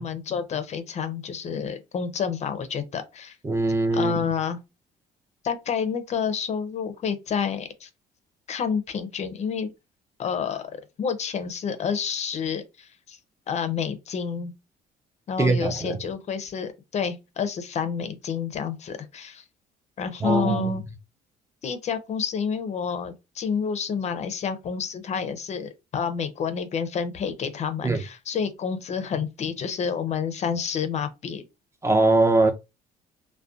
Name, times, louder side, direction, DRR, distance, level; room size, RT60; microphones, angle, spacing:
voice 1, 0.0-3.4 3.9-4.6 5.4-7.9 8.5-9.7 10.2-13.2 13.5-14.5 15.3-19.4 20.0-20.9 21.6-31.4, left 6 dB, 40° left, 0.4 m, -29 dB
voice 2, 3.4-4.3 15.4-16.0 20.2-20.8 27.8-28.0 31.8-32.5, right 2 dB, 15° right, 0.4 m, -22 dB
2.5 x 2.1 x 2.3 m
cardioid pair, 110°, 17 cm